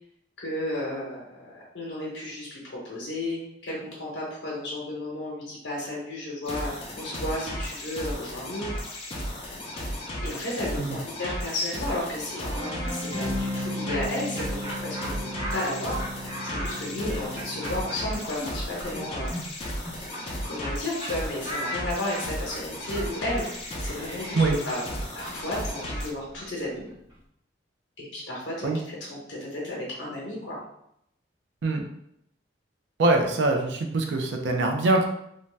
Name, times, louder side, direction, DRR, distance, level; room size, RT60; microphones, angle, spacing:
voice 1, 0.4-2.6 2.8-8.7 10.2-16.0 16.4-19.3 20.4-23.5 23.8-24.8 25.1-26.9 28.0-30.6, left 1 dB, 75° left, -4 dB, 0.8 m, -33 dB
sound 1, 6.4-26.1, equal, 30° left, 0.4 m, -35 dB
sound 2, 12.5-18.4, left 1 dB, 45° right, 1.0 m, -35 dB
Laughter, 13.7-20.7 21.0-21.1 21.4-27.2, equal, 20° right, 0.8 m, -39 dB
voice 2, 33.0-35.1, right 2 dB, 70° right, 2 dB, 0.4 m, -23 dB
2.6 x 2.1 x 3.2 m, 0.76 s
head